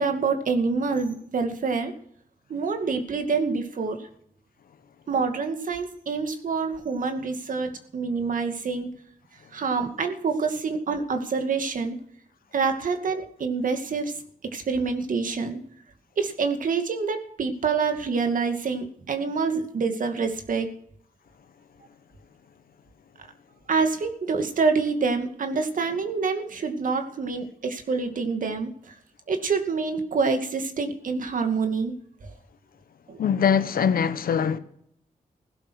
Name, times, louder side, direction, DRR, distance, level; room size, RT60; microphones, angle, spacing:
voice 1, 0.0-1.9 2.5-4.0 5.1-8.9 9.5-12.0 12.5-14.1 14.5-15.6 16.2-20.7 23.7-28.9 29.3-31.9 33.1-33.2, right 4 dB, 65° right, 2.3 m, -26 dB
voice 2, 33.2-34.6, left 7 dB, 75° left, 1.1 m, -22 dB
16.5 x 11.5 x 6.4 m
cardioid pair, 90°, 15 cm